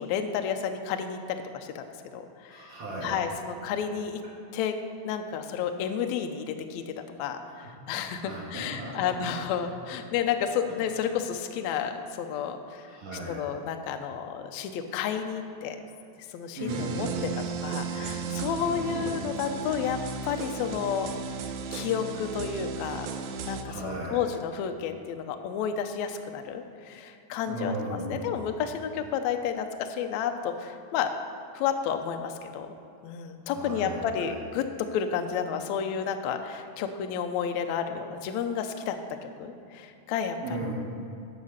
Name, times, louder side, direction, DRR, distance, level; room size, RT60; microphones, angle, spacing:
voice 1, 0.0-1.8 2.1-2.7 3.0-4.2 4.5-4.8 5.0-12.9 13.3-15.8 16.3-16.7 17.0-17.3 17.6-21.1 21.7-23.1 23.5-27.7 28.1-31.1 31.5-32.7 33.0-39.0 39.2-40.4, left 8 dB, 85° left, 7 dB, 1.6 m, -31 dB
voice 2, 2.5-3.2 7.4-7.7 8.2-9.6 11.1-11.2 12.9-13.5 16.6-17.5 18.7-19.2 23.6-24.3 27.5-28.5 33.5-34.4 40.4-40.7, right 1 dB, 50° right, -5 dB, 1.9 m, -36 dB
sound 1, 16.7-23.6, right 6 dB, 80° right, 1.7 m, -35 dB
11.0 x 4.9 x 6.5 m, 2.7 s
omnidirectional pair, 4.0 m